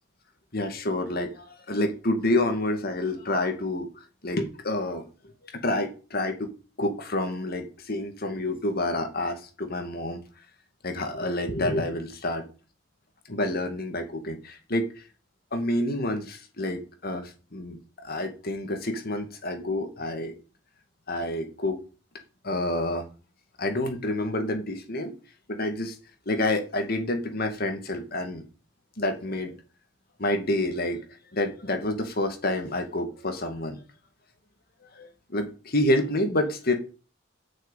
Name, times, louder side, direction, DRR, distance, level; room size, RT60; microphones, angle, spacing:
voice 1, 0.5-5.0 5.4-6.5 6.8-10.2 10.8-12.4 13.3-15.0 15.5-20.3 21.1-21.8 22.4-23.0 23.6-25.2 25.5-26.0 26.3-28.4 29.0-29.5 30.2-31.0 31.3-33.8 34.9-36.7, left 1 dB, 55° left, 6 dB, 2.2 m, -28 dB
10.5 x 6.5 x 9.1 m, 0.35 s
head